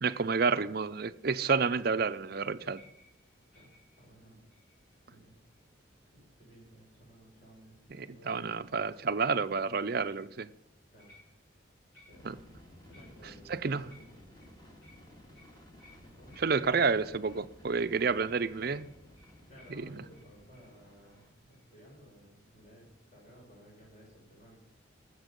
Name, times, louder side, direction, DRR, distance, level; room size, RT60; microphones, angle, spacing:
voice 1, 0.0-2.8 7.9-10.5 12.3-12.4 13.5-13.8 16.4-18.9 19.7-19.9, right 5 dB, 50° right, 0.5 m, -30 dB
sound 1, 2.6-4.9 5.5-5.9 10.1-10.4 11.0-11.6 11.9-12.4 12.9-13.5 13.8-20.7 21.1-21.2 21.5-21.7, left 2 dB, 55° left, 5.9 m, -63 dB
voice 2, 3.5-4.4 5.1-5.4 6.1-8.8 10.9-11.1 12.1-12.4 12.8-14.0 16.2-16.4 19.5-24.6, equal, 40° left, 5.4 m, -57 dB
sound 2, 12.1-21.3, left 1 dB, 20° left, 2.0 m, -55 dB
19.5 x 7.3 x 5.3 m
head